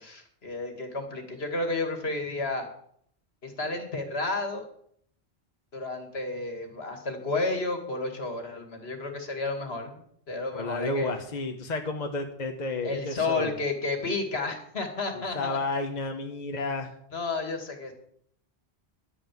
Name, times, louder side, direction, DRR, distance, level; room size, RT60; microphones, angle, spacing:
voice 1, 0.0-2.7 3.4-4.6 5.7-11.1 12.8-15.6 17.1-17.9, left 3 dB, 70° left, 5 dB, 2.4 m, -31 dB
voice 2, 10.5-13.5 15.1-16.9, left 3 dB, 40° left, 4 dB, 1.3 m, -31 dB
11.5 x 8.7 x 7.6 m, 0.66 s
omnidirectional pair, 1.1 m